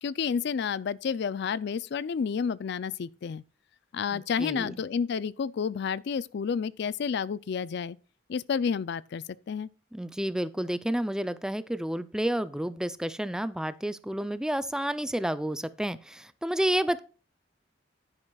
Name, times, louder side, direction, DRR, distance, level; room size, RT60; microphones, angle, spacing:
voice 1, 0.0-3.4 3.9-8.0 8.3-9.7, left 6 dB, 65° left, 0.4 m, -30 dB
voice 2, 4.1-4.8 9.9-17.0, right 1 dB, 5° right, 0.4 m, -30 dB
11.0 x 9.9 x 2.3 m
head